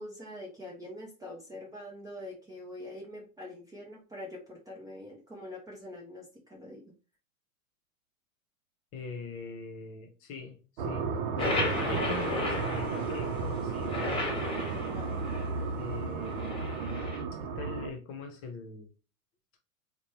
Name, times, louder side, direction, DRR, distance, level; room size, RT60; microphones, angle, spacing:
voice 1, 0.0-6.9 14.7-15.2, left 1 dB, 10° right, 0.6 m, -44 dB
voice 2, 8.9-14.2 15.8-16.5 17.6-18.9, left 3 dB, 30° left, 0.8 m, -41 dB
sound 1, 10.8-17.9, right 5 dB, 45° right, 0.6 m, -33 dB
sound 2, 11.4-15.6 16.2-17.2, left 2 dB, 10° left, 1.1 m, -35 dB
3.9 x 2.2 x 3.0 m
figure-of-eight pair, 95°, 42 cm